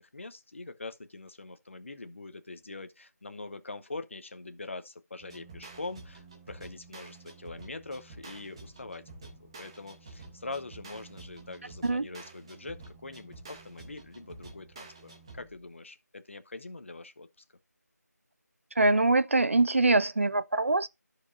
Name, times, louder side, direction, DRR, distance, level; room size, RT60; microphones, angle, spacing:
voice 1, 0.0-9.0 9.4-17.3, left 3 dB, 45° left, 0.8 m, -43 dB
sound 1, 5.2-15.7, right 3 dB, 15° right, 1.1 m, -49 dB
voice 2, 18.8-20.9, right 2 dB, 45° right, 0.4 m, -23 dB
14.0 x 4.9 x 2.5 m
figure-of-eight pair, 170°, 9 cm